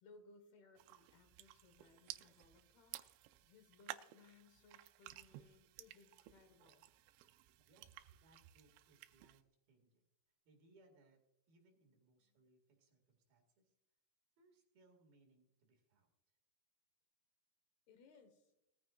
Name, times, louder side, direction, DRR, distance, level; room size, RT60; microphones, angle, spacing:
voice 1, 0.0-3.1 3.4-6.9 12.2-12.4 17.9-18.5, left 4 dB, 65° left, 7 dB, 3.1 m, -65 dB
sound 1, 0.8-9.4, right 15 dB, 85° right, 3.0 m, -55 dB
voice 2, 7.7-10.0 10.5-11.2 11.5-13.7 14.4-16.1, right 2 dB, 60° right, 3 dB, 3.6 m, -71 dB
20.0 x 14.0 x 2.4 m, 0.85 s
omnidirectional pair, 5.2 m